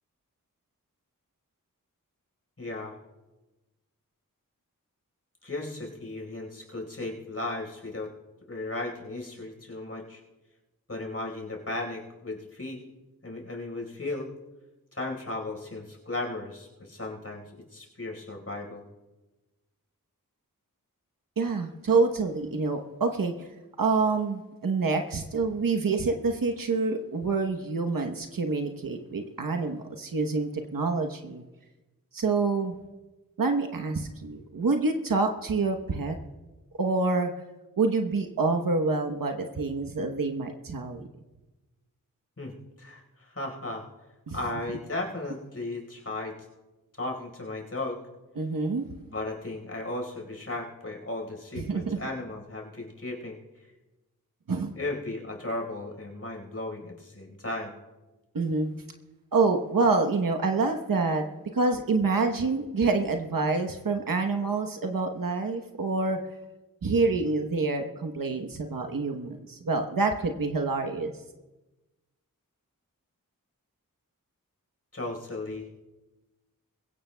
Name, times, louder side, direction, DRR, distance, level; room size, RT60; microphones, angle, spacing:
voice 1, 2.6-3.0 5.4-8.1 8.5-10.2 10.9-12.8 13.2-14.3 14.9-18.8 42.4-43.8 44.3-46.4 47.0-48.1 49.1-53.4 54.7-57.7 74.9-75.7, left 2 dB, 45° left, 1 dB, 4.4 m, -35 dB
voice 2, 21.4-23.5 23.8-31.4 32.1-32.8 33.4-36.2 36.8-37.3 37.8-41.1 44.3-44.4 48.4-48.9 51.5-52.0 54.5-54.7 58.3-58.7 59.3-61.2 61.5-66.2 66.8-71.1, right 3 dB, 70° right, 5 dB, 1.0 m, -27 dB
22.0 x 16.5 x 2.3 m, 1.1 s
wide cardioid pair, 55°, 34 cm